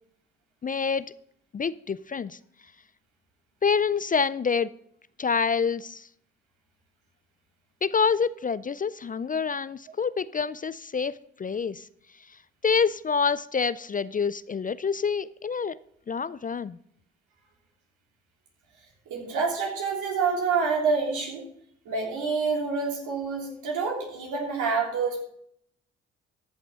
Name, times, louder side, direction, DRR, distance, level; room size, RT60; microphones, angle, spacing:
voice 1, 0.6-1.1 1.5-2.4 3.6-4.7 5.2-6.1 7.8-11.9 12.6-15.8 16.1-16.8, left 5 dB, 25° left, 17 dB, 0.4 m, -27 dB
voice 2, 19.1-21.4 21.8-25.2, right 5 dB, 75° right, -1 dB, 3.3 m, -27 dB
14.0 x 6.0 x 5.4 m, 0.67 s
hypercardioid pair, 50°, 31 cm